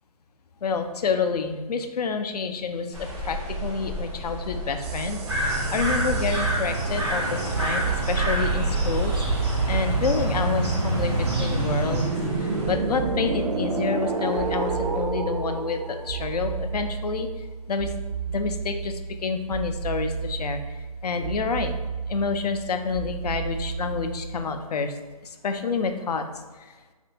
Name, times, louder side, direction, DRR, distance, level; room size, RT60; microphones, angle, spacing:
voice 1, 0.6-12.1 12.4-17.3 17.7-17.9 18.3-20.6 21.0-21.8 22.1-24.9 25.2-26.2, left 5 dB, 80° left, 7 dB, 0.4 m, -28 dB
sound 1, 2.9-12.7, equal, 5° right, 0.3 m, -35 dB
sound 2, 4.8-24.4, right 4 dB, 80° right, 0.5 m, -29 dB
sound 3, 5.3-12.1, right 1 dB, 40° right, 1.1 m, -29 dB
2.8 x 2.5 x 3.3 m, 1.3 s
hypercardioid pair, 165°, 20 cm